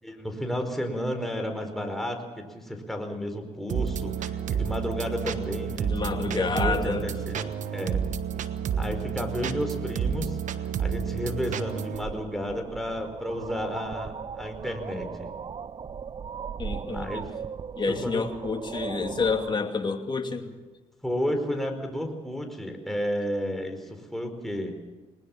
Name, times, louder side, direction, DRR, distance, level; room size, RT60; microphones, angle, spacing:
voice 1, 0.0-8.0 8.7-10.4 10.8-15.3 16.9-17.3 17.9-18.2 21.0-24.7, equal, ahead, 4 dB, 4.7 m, -32 dB
sound 1, 3.7-12.0, right 7 dB, 65° right, 1.3 m, -30 dB
voice 2, 5.9-7.1 16.6-17.3 17.8-20.5, left 4 dB, 35° left, 4 dB, 2.7 m, -29 dB
sound 2, 11.9-19.6, right 6 dB, 35° right, 0.6 m, -38 dB
20.5 x 20.0 x 7.3 m, 1.2 s
supercardioid pair, 70°, 14 cm